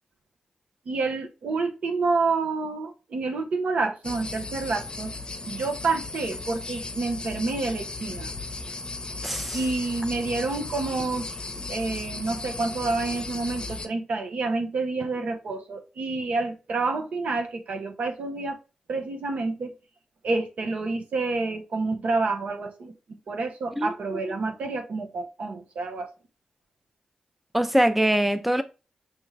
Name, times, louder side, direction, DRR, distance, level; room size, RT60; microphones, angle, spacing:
voice 1, 0.9-5.1 5.4-8.3 9.5-11.3 11.7-18.6 18.9-19.7 20.2-22.9 23.3-26.1, right 3 dB, 70° right, 0.9 m, -28 dB
sound 1, 4.0-13.9, left 3 dB, 40° left, 0.8 m, -36 dB
voice 2, 9.2-9.6 23.8-23.9 27.5-28.6, right 1 dB, 5° right, 0.6 m, -23 dB
6.0 x 2.3 x 3.2 m
supercardioid pair, 40°, 2 cm